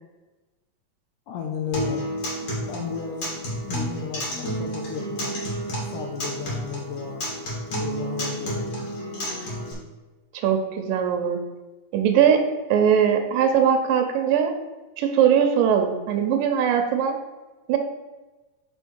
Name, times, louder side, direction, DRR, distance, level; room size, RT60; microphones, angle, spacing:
voice 1, 1.3-2.1 2.4-3.3 3.6-5.5 5.9-7.3 7.8-8.9, left 7 dB, 75° left, 2 dB, 2.1 m, -34 dB
Acoustic guitar, 1.7-9.7, equal, 45° left, 2.6 m, -30 dB
voice 2, 10.3-11.4 11.9-12.4 12.7-14.5 15.0-17.2 17.7-17.8, right 8 dB, 85° right, 5 dB, 2.4 m, -20 dB
5.3 x 4.5 x 6.2 m, 1.2 s
omnidirectional pair, 4.0 m